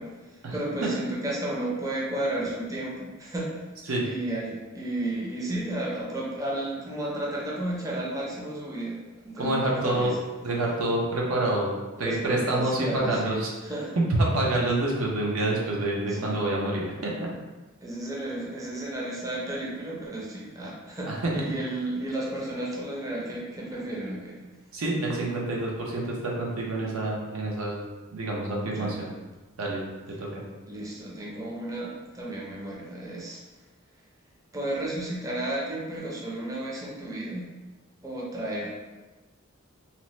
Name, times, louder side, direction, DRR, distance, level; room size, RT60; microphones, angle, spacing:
voice 1, 0.0-3.6 4.0-10.2 12.0-14.0 16.1-16.4 17.8-24.4 28.7-29.0 30.7-33.4 34.5-37.5 38.0-38.7, right 1 dB, 15° right, -5 dB, 0.5 m, -33 dB
voice 2, 9.4-10.1 10.4-11.7 12.0-13.5 14.2-17.1 21.2-21.3 24.7-27.8 28.1-29.1 29.6-29.8 30.2-30.4, right 2 dB, 80° right, -3 dB, 0.6 m, -27 dB
2.8 x 2.0 x 2.9 m, 1.2 s
head